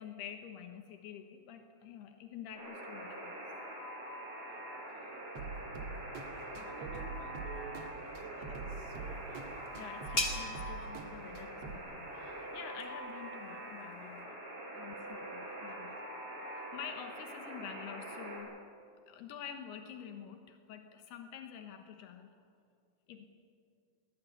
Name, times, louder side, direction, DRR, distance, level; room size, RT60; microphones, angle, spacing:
voice 1, 0.0-3.4 9.7-14.4 14.8-15.9 16.4-18.6 19.1-22.3 23.1-23.3, left 8 dB, 80° left, 5 dB, 3.3 m, -48 dB
Alarm, 2.5-18.4, right 1 dB, 35° right, 7.0 m, -44 dB
voice 2, 4.5-5.3 6.0-9.8 14.7-16.2, right 6 dB, 70° right, 4 dB, 3.7 m, -53 dB
sound 1, 5.4-11.8, right 4 dB, 50° right, 2.2 m, -45 dB
sound 2, 8.8-14.2, left 1 dB, 20° left, 1.9 m, -42 dB
22.0 x 19.5 x 9.6 m, 2.3 s
omnidirectional pair, 4.6 m